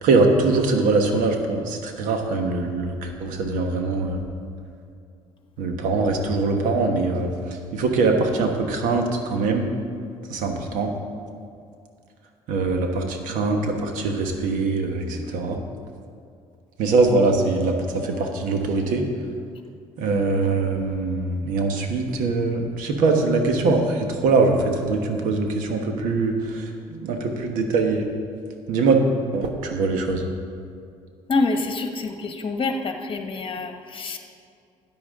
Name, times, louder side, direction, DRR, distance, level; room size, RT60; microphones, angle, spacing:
voice 1, 0.0-4.2 5.6-7.3 7.7-9.7 10.3-10.9 12.5-15.6 16.8-19.1 20.0-28.0 28.7-29.0 29.3-30.3, right 3 dB, 80° right, 4 dB, 1.3 m, -22 dB
voice 2, 31.3-34.2, left 3 dB, 40° left, 5 dB, 1.2 m, -26 dB
13.0 x 9.3 x 3.7 m, 2.4 s
supercardioid pair, 70°, 13 cm